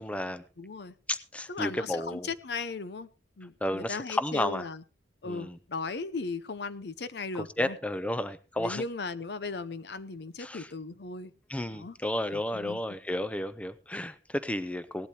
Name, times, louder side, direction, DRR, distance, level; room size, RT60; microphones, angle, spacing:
voice 1, 0.0-0.4 1.1-2.3 3.6-4.7 5.2-5.6 7.6-8.8 10.4-10.7 11.5-15.1, left 1 dB, 5° left, 12 dB, 0.5 m, -32 dB
voice 2, 0.6-0.9 1.5-3.1 3.4-4.8 5.2-7.8 8.6-11.3 11.7-12.0 12.3-12.8, left 4 dB, 65° left, 14 dB, 0.7 m, -37 dB
18.0 x 11.5 x 2.9 m, 0.32 s
head